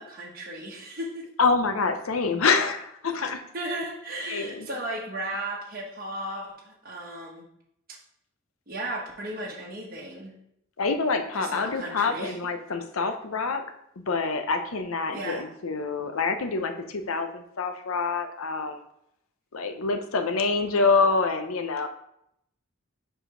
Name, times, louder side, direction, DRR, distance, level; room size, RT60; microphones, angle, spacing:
voice 1, 0.0-1.2 3.5-7.4 8.7-10.3 11.3-12.3 15.1-15.4, right 1 dB, 45° right, -3 dB, 1.2 m, -35 dB
voice 2, 1.4-3.4 4.3-4.7 10.8-13.6 14.1-18.8 19.5-21.9, left 4 dB, 90° left, 8 dB, 0.7 m, -26 dB
5.0 x 4.9 x 4.9 m, 0.75 s
head